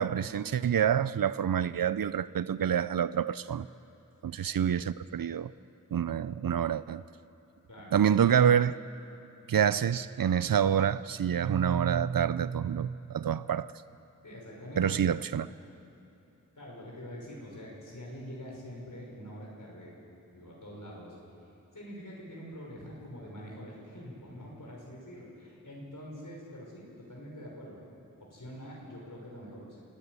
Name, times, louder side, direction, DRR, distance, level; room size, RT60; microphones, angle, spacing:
voice 1, 0.0-3.7 4.2-5.5 5.9-7.0 7.9-8.8 9.5-13.7 14.8-15.5, right 8 dB, 85° right, 0.5 m, -27 dB
voice 2, 14.2-15.5 16.6-19.9 20.3-21.2 21.7-27.8 28.2-29.8, equal, 70° left, 6.0 m, -45 dB
27.5 x 15.0 x 9.7 m
wide cardioid pair, 50°, 33 cm